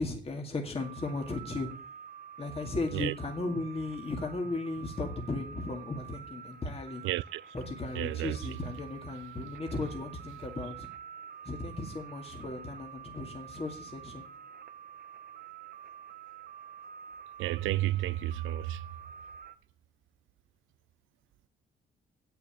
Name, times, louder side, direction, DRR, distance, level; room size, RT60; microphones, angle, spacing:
voice 1, 0.0-1.7 2.4-7.0 7.5-10.9 11.5-14.3, left 2 dB, 30° left, 2.2 m, -36 dB
sound 1, 0.8-19.6, right 8 dB, 50° right, 0.9 m, -48 dB
voice 2, 7.0-7.5 7.9-8.6 17.4-18.9, right 15 dB, 85° right, 0.4 m, -32 dB
8.5 x 6.9 x 8.6 m
cardioid pair, 90°, 20 cm